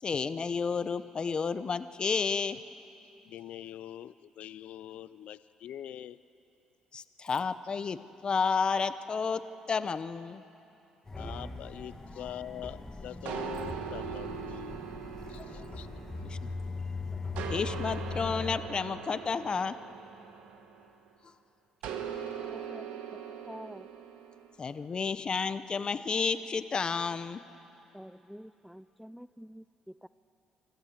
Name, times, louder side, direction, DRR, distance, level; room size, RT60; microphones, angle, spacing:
voice 1, 0.0-2.6 6.9-9.4 9.7-10.4 16.2-16.5 17.5-19.8 24.6-27.4, left 5 dB, 40° left, 13 dB, 0.8 m, -31 dB
voice 2, 3.2-6.2 11.2-14.8 15.3-16.0, left 11 dB, 75° left, 15 dB, 0.4 m, -44 dB
sound 1, 11.1-18.6, left 3 dB, 25° left, 2.2 m, -40 dB
sound 2, 13.3-16.8 17.4-21.1 21.8-24.5, right 8 dB, 85° right, 1.3 m, -41 dB
voice 3, 22.5-23.9 27.9-30.1, equal, ahead, 15 dB, 0.4 m, -48 dB
25.0 x 14.0 x 7.9 m, 2.9 s
supercardioid pair, 70°, 2 cm